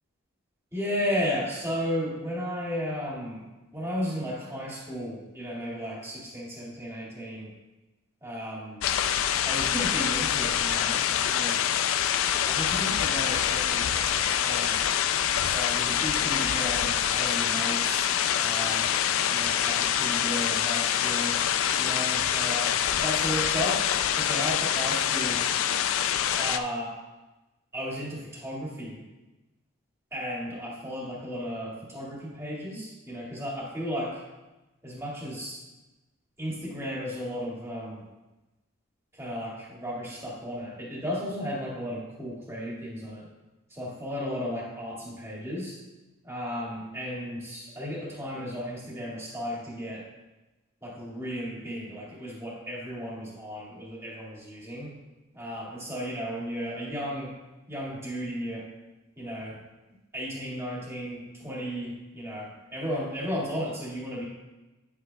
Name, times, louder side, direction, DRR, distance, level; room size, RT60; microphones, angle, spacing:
voice 1, 0.7-3.4 3.7-7.5 8.2-8.9 9.4-11.6 12.3-14.8 15.4-18.1 18.4-21.4 21.8-22.7 23.0-23.8 24.2-25.4 26.4-26.9 27.7-29.0 30.1-34.1 34.8-35.6 36.4-38.0 39.2-43.3 43.7-45.8 46.2-50.0 50.8-54.9 55.3-57.3 57.7-58.6 59.2-59.6 60.1-64.3, equal, 10° right, -5 dB, 1.9 m, -34 dB
sound 1, 8.8-26.6, left 9 dB, 75° left, 0.3 m, -26 dB
9.7 x 8.4 x 2.3 m, 1.1 s
head